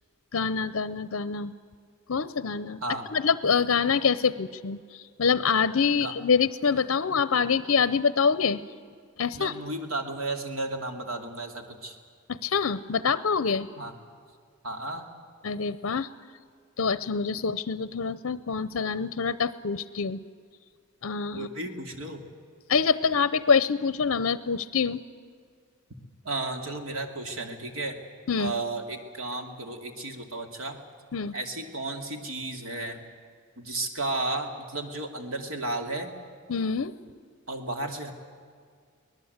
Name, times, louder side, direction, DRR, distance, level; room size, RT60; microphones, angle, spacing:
voice 1, 0.3-1.5 2.1-2.8 3.1-8.6 9.2-9.5 12.3-13.7 15.4-16.1 16.8-20.2 21.0-21.5 22.7-25.0 28.3-28.5 31.1-31.3 36.5-36.9, left 5 dB, 65° left, 15 dB, 0.6 m, -25 dB
voice 2, 9.4-12.0 13.8-13.9 14.6-15.1 21.3-22.2 26.2-28.0 28.4-30.8 31.3-33.0 33.6-36.1 37.5-38.1, right 2 dB, 70° right, 4 dB, 2.7 m, -33 dB
24.0 x 19.0 x 8.1 m, 2.1 s
head